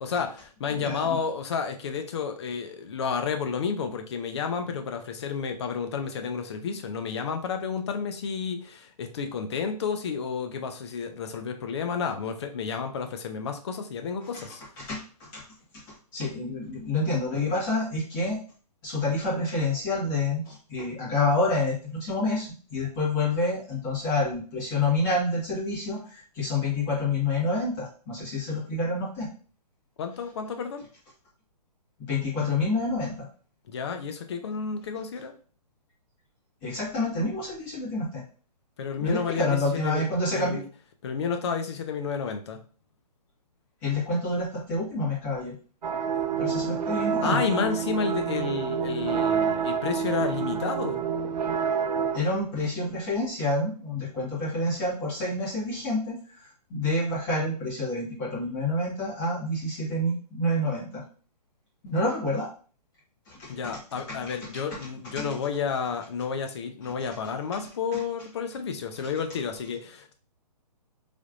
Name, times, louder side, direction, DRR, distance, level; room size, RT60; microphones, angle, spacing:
voice 1, 0.0-14.6 30.0-30.8 33.7-35.3 38.8-40.0 40.3-40.6 41.0-42.6 47.2-51.1 63.5-70.1, left 6 dB, 40° left, 6 dB, 0.5 m, -31 dB
voice 2, 0.7-1.2 14.8-15.0 15.3-15.4 16.1-18.4 18.8-29.3 32.1-33.1 36.6-38.2 39.0-40.6 43.8-45.5 46.4-47.4 52.1-56.1 56.7-61.0 61.8-62.5 63.3-63.7, left 2 dB, 20° left, -7 dB, 1.5 m, -28 dB
sound 1, 45.8-52.2, right 7 dB, 85° right, 0.5 m, -28 dB
3.3 x 3.0 x 2.5 m, 0.40 s
hypercardioid pair, 160°, 21 cm